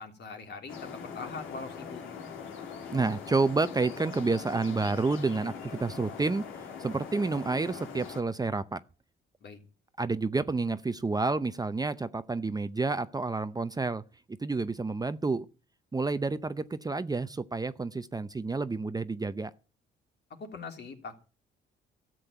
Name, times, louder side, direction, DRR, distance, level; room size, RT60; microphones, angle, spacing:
voice 1, 0.0-2.0 9.4-9.6 20.4-21.2, left 4 dB, 60° left, 3.4 m, -42 dB
sound 1, 0.7-8.2, left 6 dB, 85° left, 2.6 m, -42 dB
voice 2, 2.9-6.5 6.8-8.8 10.0-14.0 14.4-15.5 15.9-19.5, right 3 dB, 20° right, 0.7 m, -29 dB
13.5 x 7.8 x 9.1 m
cardioid pair, 90°, 20 cm